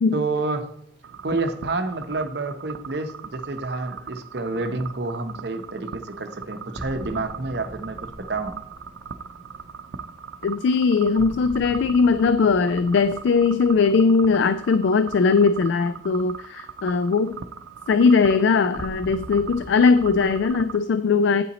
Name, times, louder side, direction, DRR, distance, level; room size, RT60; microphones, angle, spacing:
voice 1, 0.1-0.7 1.2-8.6, right 3 dB, 55° right, 7 dB, 0.8 m, -29 dB
sound 1, 1.0-20.8, right 7 dB, 80° right, 0.4 m, -40 dB
sound 2, 6.7-15.7 18.7-20.5, equal, ahead, 0.6 m, -43 dB
voice 2, 10.4-17.4 17.9-21.4, left 4 dB, 65° left, 12 dB, 0.3 m, -19 dB
8.9 x 5.7 x 4.1 m, 0.69 s
head